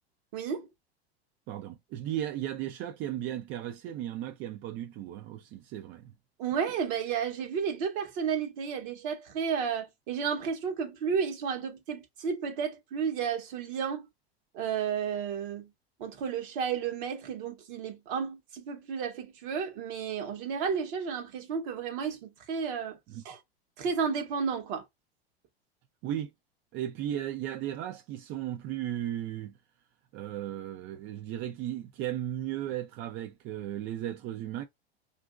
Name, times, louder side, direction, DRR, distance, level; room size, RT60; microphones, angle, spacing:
voice 1, 0.3-0.7 6.4-14.1 14.5-15.7 16.0-23.0 23.2-23.4 23.8-24.8, right 6 dB, 60° right, 1.1 m, -32 dB
voice 2, 1.5-6.1 23.1-23.2 26.0-26.3 26.7-29.6 30.1-34.6, right 12 dB, 40° right, 0.4 m, -35 dB
2.8 x 2.5 x 2.4 m
hypercardioid pair, 90°, 31 cm